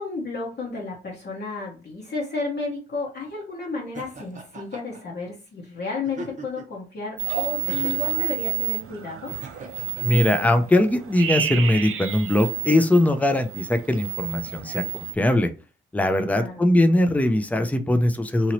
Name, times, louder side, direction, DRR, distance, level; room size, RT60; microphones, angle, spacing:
voice 1, 0.0-9.3 16.2-16.7, left 3 dB, 55° left, -4 dB, 1.0 m, -32 dB
Laughter, 3.9-5.0 6.0-6.8 7.7-8.2 9.3-10.1, right 3 dB, 35° right, 0.9 m, -39 dB
sound 1, 7.2-15.1, right 11 dB, 85° right, 0.5 m, -30 dB
voice 2, 10.0-14.8 15.1-15.5 15.9-18.5, left 1 dB, 5° left, 8 dB, 0.5 m, -21 dB
2.9 x 2.7 x 3.0 m, 0.34 s
cardioid pair, 75°, 21 cm